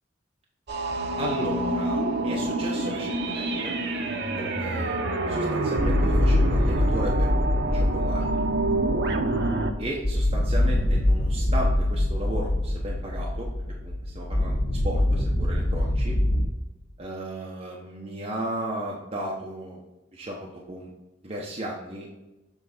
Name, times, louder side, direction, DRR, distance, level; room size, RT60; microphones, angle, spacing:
sound 1, 0.7-9.7, right 2 dB, 60° right, 0.7 m, -27 dB
voice 1, 1.2-3.7 4.3-8.4 9.8-13.5 13.8-16.2 17.0-19.8 20.1-20.9 21.2-22.1, right 1 dB, 35° right, -3 dB, 0.9 m, -35 dB
sound 2, 5.8-16.5, left 1 dB, 85° left, 1.4 m, -24 dB
7.3 x 4.0 x 4.0 m, 1.0 s
head